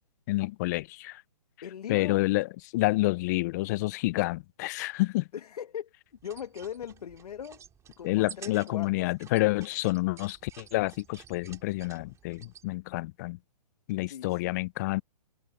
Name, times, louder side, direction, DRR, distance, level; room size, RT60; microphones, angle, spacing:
voice 1, 0.3-1.2 1.9-2.5 2.7-5.3 8.0-13.4 13.9-15.0, left 20 dB, 25° left, 0.5 m, -28 dB
voice 2, 1.6-2.2 5.3-5.9 6.2-7.6 8.0-9.1 14.1-14.6, left 9 dB, 65° left, 1.6 m, -40 dB
sound 1, 6.2-12.7, right 9 dB, 15° right, 2.7 m, -51 dB
hypercardioid pair, 140°, 21 cm